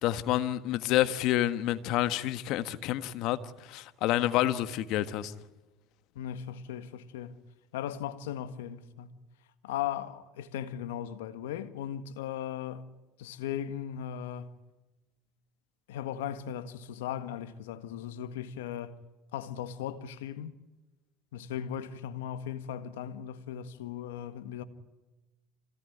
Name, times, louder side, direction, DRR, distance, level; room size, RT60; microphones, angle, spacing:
voice 1, 0.0-5.3, left 13 dB, 65° left, 1.4 m, -28 dB
voice 2, 6.1-7.4 7.7-9.2 9.6-12.9 13.2-14.5 15.9-19.0 19.3-20.5 21.3-24.6, left 10 dB, 85° left, 1.7 m, -37 dB
26.5 x 17.5 x 9.5 m
hypercardioid pair, 85°, 0 cm